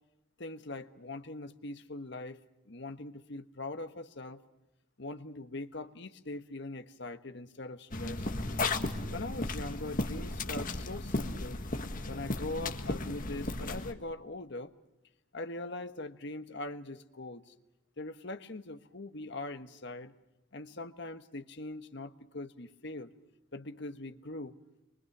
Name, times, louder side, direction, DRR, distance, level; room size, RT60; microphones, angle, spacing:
voice 1, 0.4-4.4 5.0-8.3 9.1-11.6 12.0-14.7 15.3-17.5 18.0-20.1 20.5-23.1 23.5-24.6, left 2 dB, 55° left, 1.4 m, -42 dB
sound 1, 7.9-13.9, left 2 dB, 40° left, 1.7 m, -35 dB
28.5 x 24.0 x 6.1 m
head